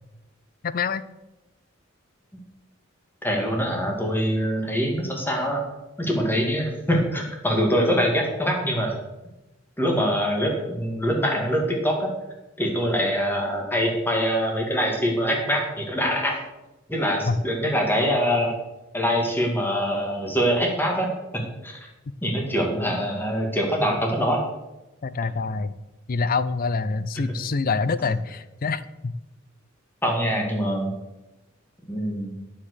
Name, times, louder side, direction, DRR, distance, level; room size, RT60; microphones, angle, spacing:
voice 1, 0.6-1.1 17.3-17.4 25.0-25.8 26.1-29.1, left 4 dB, 45° left, 15 dB, 0.5 m, -26 dB
voice 2, 3.2-5.6 6.0-8.9 9.8-12.1 12.6-16.4 16.9-18.5 18.9-21.9 22.2-24.5 28.0-28.1 30.0-30.9 31.9-32.3, equal, 10° left, 1 dB, 2.1 m, -24 dB
9.6 x 7.3 x 6.4 m, 1.0 s
head